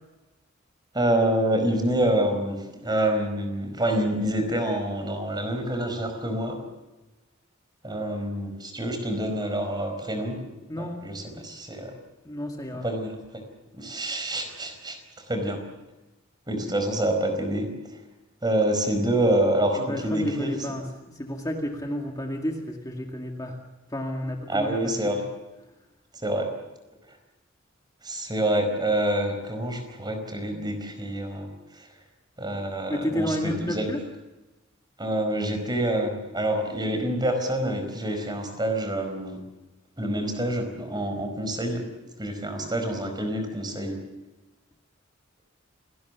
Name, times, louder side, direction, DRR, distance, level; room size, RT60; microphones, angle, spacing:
voice 1, 0.9-6.6 7.8-10.4 10.8-11.9 12.8-13.2 13.7-15.0 15.3-15.6 16.5-17.7 18.4-20.5 24.5-25.2 26.1-26.5 28.0-31.9 32.4-34.0 35.0-39.4 40.0-41.9 42.2-44.0, right 1 dB, 20° right, 6 dB, 4.9 m, -27 dB
voice 2, 10.7-11.4 12.3-12.9 14.5-14.6 19.8-23.6 23.9-25.2 32.9-34.1, equal, 20° left, 2 dB, 2.1 m, -31 dB
28.0 x 19.0 x 7.0 m, 1.1 s
head